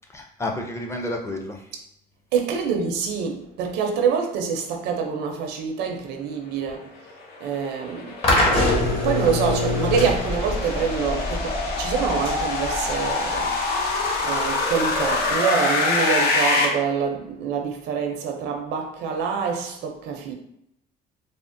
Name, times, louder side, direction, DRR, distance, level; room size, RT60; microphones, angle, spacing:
voice 1, 0.1-1.7, left 1 dB, 15° left, 0.5 m, -30 dB
voice 2, 2.3-6.9 7.4-8.2 9.0-20.3, right 6 dB, 85° right, 0.5 m, -26 dB
sound 1, 7.1-16.6, left 3 dB, 70° left, 0.7 m, -25 dB
sound 2, 8.2-15.3, left 1 dB, 35° left, 0.9 m, -25 dB
3.5 x 2.0 x 2.5 m
cardioid pair, 110°, 17 cm